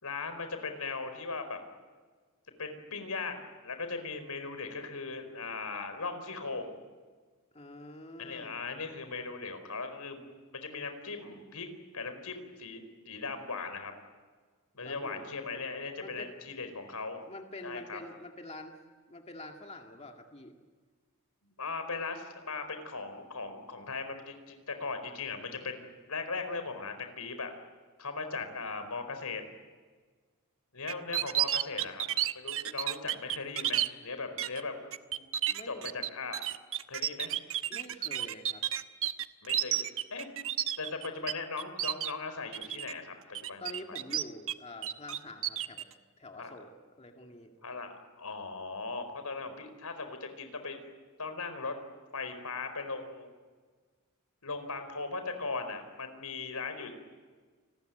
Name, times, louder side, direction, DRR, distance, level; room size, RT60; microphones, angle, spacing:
voice 1, 0.0-1.6 2.6-6.7 8.2-11.7 11.9-13.9 14.7-17.2 17.6-18.0 21.6-27.5 28.0-29.4 30.7-32.0 32.3-34.7 35.1-35.3 35.7-36.4 36.9-37.3 39.4-40.3 40.8-43.1 43.4-43.6 46.4-46.5 47.6-47.9 48.2-50.8 51.2-51.8 52.1-53.3 54.4-56.9, left 4 dB, 90° left, 8 dB, 4.7 m, -38 dB
voice 2, 7.5-8.6 14.8-15.3 16.0-16.4 17.1-18.8 19.1-20.6 35.5-35.9 37.7-38.7 43.6-45.9 46.2-46.7 47.0-47.5, left 1 dB, 30° left, 3 dB, 2.2 m, -46 dB
sound 1, 30.9-33.9 34.4-34.6 34.9-41.3 41.6-42.1 42.5-42.9 43.3-44.5 44.8-45.8, right 11 dB, 65° right, 1.0 m, -31 dB
29.5 x 20.5 x 9.3 m, 1.5 s
head